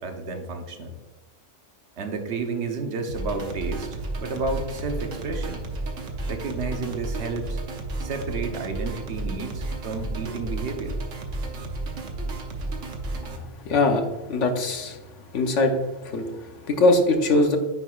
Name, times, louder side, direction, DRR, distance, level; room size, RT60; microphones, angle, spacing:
voice 1, 0.0-0.9 2.0-5.6 6.3-7.6 8.0-11.0, right 4 dB, 65° right, 5 dB, 1.1 m, -31 dB
sound 1, 3.1-13.4, right 2 dB, 85° right, 1.3 m, -32 dB
voice 2, 13.6-15.0 15.3-15.7 16.0-16.3 16.7-17.6, left 2 dB, 80° left, 5 dB, 1.2 m, -21 dB
9.3 x 4.6 x 2.4 m, 1.2 s
omnidirectional pair, 1.2 m